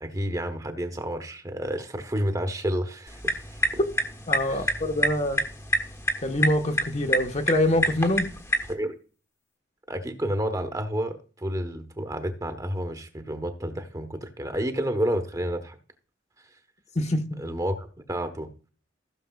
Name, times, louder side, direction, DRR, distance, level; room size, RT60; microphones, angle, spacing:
voice 1, 0.0-3.8 4.4-4.7 8.7-8.9 9.9-15.8 17.4-18.5, equal, 20° right, 1.1 m, -30 dB
sound 1, 3.1-8.7, equal, 15° left, 1.2 m, -28 dB
voice 2, 4.3-5.4 6.2-8.3 16.9-17.4, left 1 dB, 35° left, 1.2 m, -25 dB
15.5 x 6.9 x 2.4 m
head